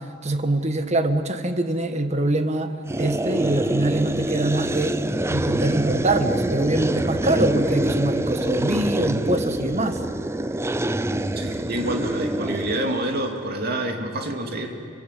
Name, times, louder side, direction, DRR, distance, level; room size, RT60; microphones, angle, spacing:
voice 1, 0.2-2.7 3.0-5.0 5.3-10.0, right 2 dB, 35° right, 8 dB, 1.5 m, -24 dB
sound 1, 2.9-13.3, right 1 dB, 15° right, 0.6 m, -25 dB
voice 2, 11.4-14.7, right 1 dB, 50° right, 3 dB, 2.8 m, -27 dB
28.5 x 24.0 x 8.4 m, 2.6 s
head